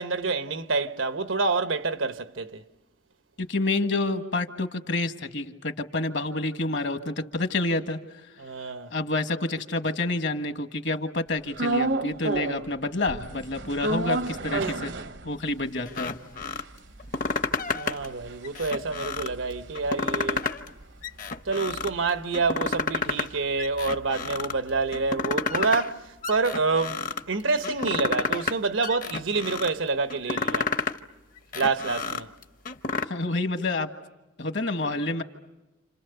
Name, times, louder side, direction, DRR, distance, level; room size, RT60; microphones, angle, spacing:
voice 1, 0.0-2.6 8.4-8.9 14.6-14.8 17.7-20.5 21.5-27.0 27.3-30.7 31.5-32.3, right 4 dB, 85° right, 1.1 m, -27 dB
voice 2, 3.4-8.0 8.9-14.9 15.2-16.1 33.0-33.9 34.4-35.2, left 2 dB, 60° left, 1.5 m, -28 dB
sound 1, 11.6-12.8 13.1-15.7 16.0-16.1 16.3-20.8 21.2-25.2, right 2 dB, 65° right, 0.9 m, -32 dB
sound 2, 15.9-16.6 17.0-18.1 18.4-19.3 19.7-20.7 21.0-21.9 22.3-23.3 23.6-24.5 24.9-25.9 26.2-27.2 27.6-28.6 28.8-29.7 30.1-31.0 31.4-33.0, left 4 dB, 45° left, 0.8 m, -30 dB
29.0 x 27.5 x 6.8 m
head